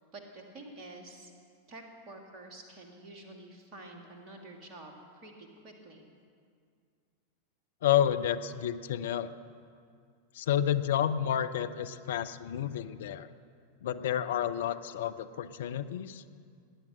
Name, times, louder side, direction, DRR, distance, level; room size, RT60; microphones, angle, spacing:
voice 1, 0.1-1.3 1.7-6.1, right 2 dB, 35° right, 2 dB, 2.5 m, -49 dB
voice 2, 7.8-9.3 10.3-13.3 13.8-16.2, left 10 dB, 60° left, 10 dB, 0.6 m, -30 dB
17.0 x 10.5 x 7.4 m, 2.2 s
figure-of-eight pair, 90°, 0 cm